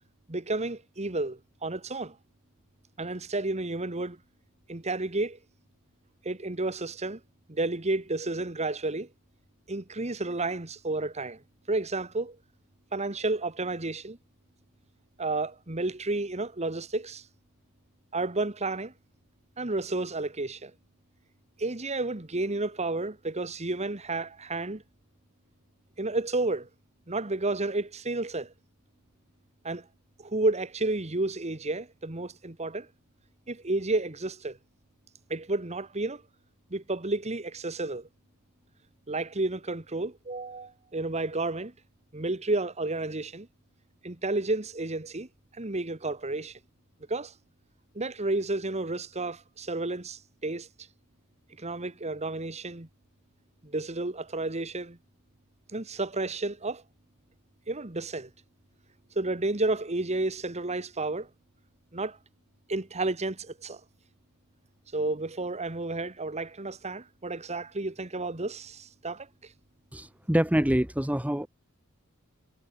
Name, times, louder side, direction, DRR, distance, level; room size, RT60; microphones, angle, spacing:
voice 1, 0.3-2.2 3.0-4.2 4.7-5.4 6.2-7.2 7.5-9.1 9.7-11.4 11.7-12.4 12.9-14.2 15.2-17.2 18.1-18.9 19.6-20.7 21.6-24.8 26.0-26.7 27.1-28.5 29.6-29.9 30.2-32.9 33.5-34.6 35.3-36.2 36.7-38.1 39.1-41.7 42.1-43.5 44.0-45.3 45.6-46.6 47.1-47.3 47.9-50.7 51.6-52.9 53.6-55.0 55.7-56.8 57.7-58.3 59.1-61.3 61.9-62.2 62.7-63.8 64.9-69.5, right 2 dB, 30° right, 1.6 m, -31 dB
voice 2, 69.9-71.5, equal, 5° right, 1.2 m, -25 dB
head